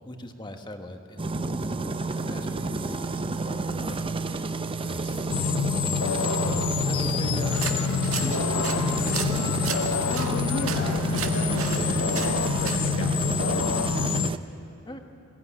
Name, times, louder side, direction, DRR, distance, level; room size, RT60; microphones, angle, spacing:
voice 1, 0.0-4.0 6.0-9.1 14.9-15.0, left 1 dB, 20° left, 5 dB, 1.4 m, -40 dB
sound 1, 1.2-14.4, right 3 dB, 25° right, 0.6 m, -30 dB
voice 2, 4.8-5.6 10.0-14.4, left 2 dB, 50° left, 0 dB, 1.4 m, -36 dB
sound 2, 5.3-14.3, left 7 dB, 75° left, 0.4 m, -27 dB
sound 3, 7.4-13.0, right 7 dB, 65° right, 1.7 m, -36 dB
21.0 x 17.0 x 10.0 m, 2.8 s
head